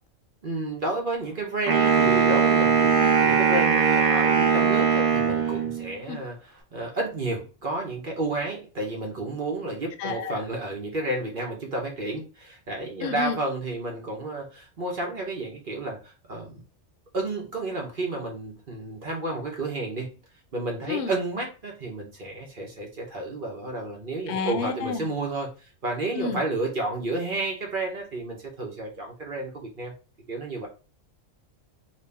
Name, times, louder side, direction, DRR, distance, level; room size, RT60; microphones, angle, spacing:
voice 1, 0.4-16.6 17.1-20.1 20.5-29.9 30.3-30.7, right 2 dB, 45° right, 0 dB, 1.1 m, -31 dB
Wind instrument woodwind instrument, 1.7-5.9, right 6 dB, 30° right, 0.9 m, -20 dB
voice 2, 10.0-10.4 13.0-13.4 20.9-21.1 24.3-25.1 26.1-26.4, left 5 dB, 65° left, 6 dB, 0.8 m, -30 dB
3.1 x 2.8 x 3.4 m, 0.34 s
omnidirectional pair, 1.3 m